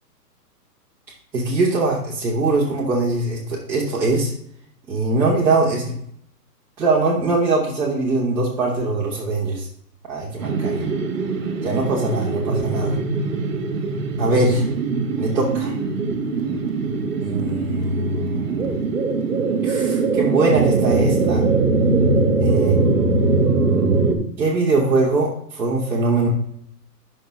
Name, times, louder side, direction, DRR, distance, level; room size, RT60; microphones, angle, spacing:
voice 1, 1.3-4.3 4.9-6.0 6.8-9.7 10.1-10.9 11.6-13.0 14.2-14.6 15.2-15.7 17.2-18.7 19.6-21.4 22.4-22.7 24.4-26.3, right 2 dB, 5° right, -9 dB, 0.9 m, -22 dB
sound 1, 10.4-24.2, right 3 dB, 50° right, 1.5 m, -21 dB
8.7 x 6.5 x 3.2 m, 0.67 s
hypercardioid pair, 175°, 49 cm